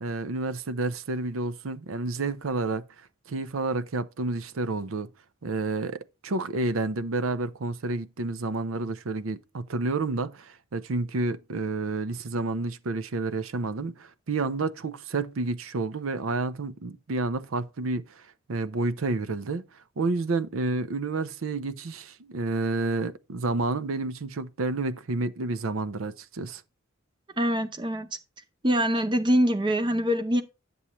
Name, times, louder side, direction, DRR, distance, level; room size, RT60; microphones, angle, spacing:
voice 1, 0.0-2.9 3.3-5.1 5.4-19.6 20.0-26.6, right 3 dB, 85° right, 0.6 m, -30 dB
voice 2, 27.4-28.1 28.6-30.4, equal, 25° right, 0.6 m, -24 dB
9.8 x 7.0 x 3.0 m
head